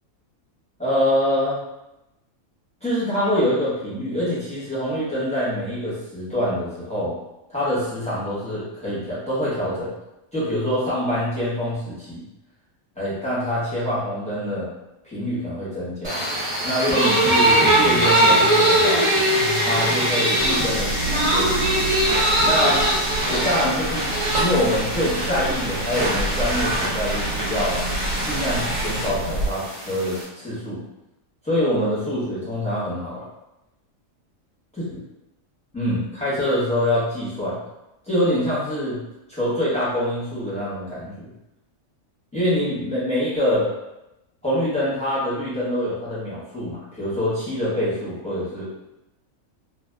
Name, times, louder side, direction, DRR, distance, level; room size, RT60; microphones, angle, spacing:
voice 1, 0.8-1.6 2.8-7.2 7.5-9.9 10.3-12.2 13.0-14.7 15.0-16.2 16.6-19.1 19.6-21.9 22.4-22.9 23.2-24.1 24.4-27.8 28.2-30.8 31.4-33.2 35.7-37.6 38.1-39.0 39.3-41.3 42.3-43.7 44.4-48.7, equal, 5° left, -11 dB, 0.7 m, -25 dB
sound 1, 16.0-30.2, right 1 dB, 40° right, 0.4 m, -21 dB
sound 2, 20.4-29.5, right 2 dB, 85° left, 1.0 m, -30 dB
2.7 x 2.1 x 2.2 m, 0.92 s
omnidirectional pair, 1.4 m